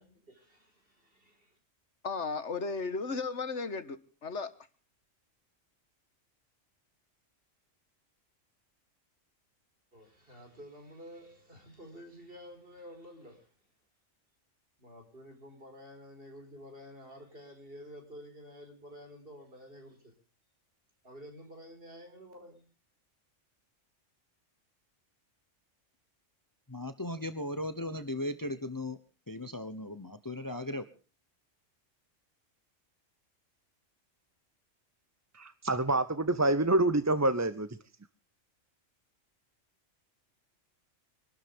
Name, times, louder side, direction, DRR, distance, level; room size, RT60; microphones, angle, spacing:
voice 1, 0.0-1.6 9.9-13.5 14.8-20.1 21.0-22.6, equal, 45° right, 5.4 m, -50 dB
voice 2, 2.0-4.5, left 4 dB, 65° left, 1.7 m, -35 dB
voice 3, 26.7-29.0 29.3-30.9, left 1 dB, 15° left, 1.1 m, -37 dB
voice 4, 35.4-37.7, right 2 dB, 20° right, 0.6 m, -27 dB
25.5 x 13.0 x 3.6 m
omnidirectional pair, 1.3 m